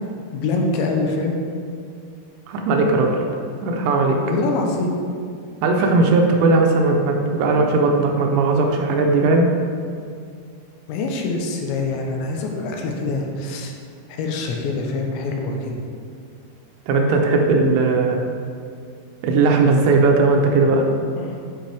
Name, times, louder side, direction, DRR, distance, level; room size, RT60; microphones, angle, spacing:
voice 1, 0.3-1.4 4.2-4.9 10.9-13.7 14.2-15.8 21.2-21.4, left 3 dB, 80° left, 1 dB, 3.1 m, -24 dB
voice 2, 2.5-3.1 3.6-4.2 5.6-9.5 16.9-18.2 19.2-20.9, right 3 dB, 80° right, 2 dB, 2.8 m, -17 dB
10.0 x 5.4 x 3.4 m, 2.2 s
omnidirectional pair, 5.2 m